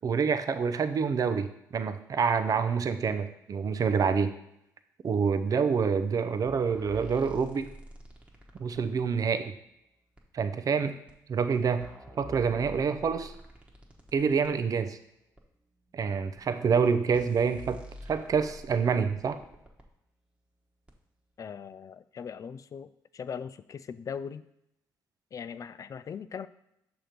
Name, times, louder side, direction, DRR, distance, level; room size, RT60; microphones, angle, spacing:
voice 1, 0.0-4.3 5.0-7.7 8.6-9.5 10.3-11.0 11.3-11.9 12.2-13.3 14.1-15.0 15.9-17.8 18.1-19.4, right 6 dB, 45° right, 10 dB, 0.6 m, -27 dB
sound 1, 6.5-9.2 10.2-10.3 11.1-11.2 11.5-14.5 15.4-15.5 16.4-16.5 16.8-16.9 17.1-19.9 20.9-21.0, equal, 15° right, 1.2 m, -47 dB
voice 2, 21.4-24.4 25.3-26.5, left 7 dB, 45° left, 14 dB, 0.3 m, -40 dB
6.2 x 3.0 x 5.0 m, 0.80 s
supercardioid pair, 65°, 8 cm